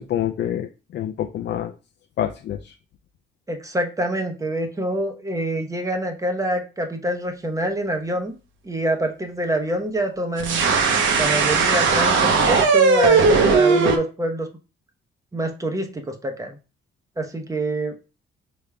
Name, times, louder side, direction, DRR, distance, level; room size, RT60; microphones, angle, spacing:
voice 1, 0.0-1.7 2.2-2.7, left 11 dB, 60° left, 6 dB, 0.4 m, -27 dB
voice 2, 3.5-8.3 8.6-10.7 11.2-14.5 15.3-16.6 17.2-17.9, right 1 dB, 15° right, 4 dB, 0.8 m, -26 dB
sound 1, 10.4-14.0, right 4 dB, 75° right, 0.9 m, -17 dB
5.0 x 3.5 x 2.3 m, 0.32 s
cardioid pair, 90°, 20 cm